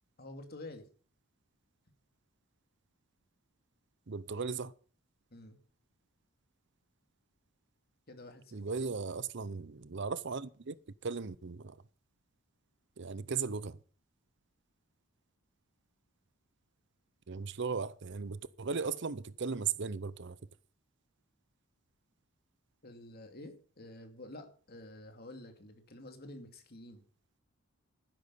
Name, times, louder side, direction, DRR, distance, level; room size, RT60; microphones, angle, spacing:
voice 1, 0.2-0.8 5.3-5.6 8.1-8.6 22.8-27.0, left 1 dB, 45° left, 2.4 m, -49 dB
voice 2, 4.1-4.7 8.5-10.8 11.0-11.8 13.0-13.8 17.3-20.4, right 5 dB, 55° right, 0.6 m, -37 dB
12.5 x 10.5 x 5.5 m
head